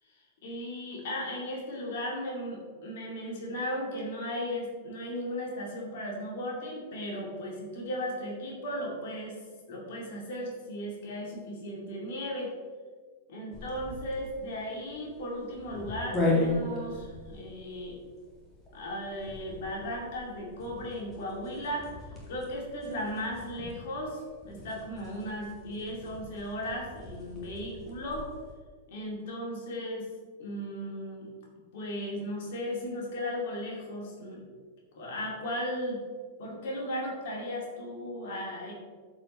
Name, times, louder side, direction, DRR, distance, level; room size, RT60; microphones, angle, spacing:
voice 1, 0.4-9.4 9.7-12.5 13.3-18.0 18.7-21.9 22.3-28.3 28.9-30.1 30.4-31.3 31.7-34.4 34.9-36.0 36.4-38.7, equal, 55° left, -2 dB, 2.6 m, -36 dB
sound 1, 13.5-28.4, left 2 dB, 20° left, 2.4 m, -37 dB
13.5 x 4.9 x 3.3 m, 1.5 s
figure-of-eight pair, 90°, 0 cm